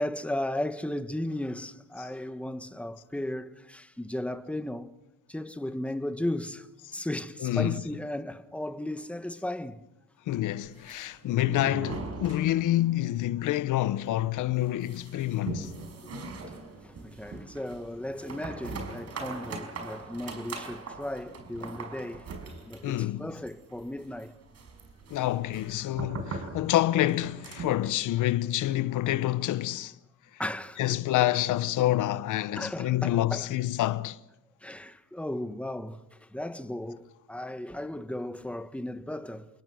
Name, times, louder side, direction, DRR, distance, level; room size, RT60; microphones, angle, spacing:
voice 1, 0.0-4.9 5.3-6.7 6.9-9.8 16.8-22.3 22.7-24.3 30.4-31.0 32.6-33.5 34.6-39.5, left 1 dB, 5° left, 1.5 m, -35 dB
voice 2, 7.4-7.8 10.3-15.7 22.8-23.3 25.1-30.0 30.8-34.2, left 14 dB, 85° left, 1.0 m, -27 dB
sound 1, 10.6-13.0 13.3-13.4 13.7-13.8 14.2-27.9, right 4 dB, 55° right, 5.4 m, -41 dB
28.0 x 21.5 x 6.4 m
cardioid pair, 90°, 30 cm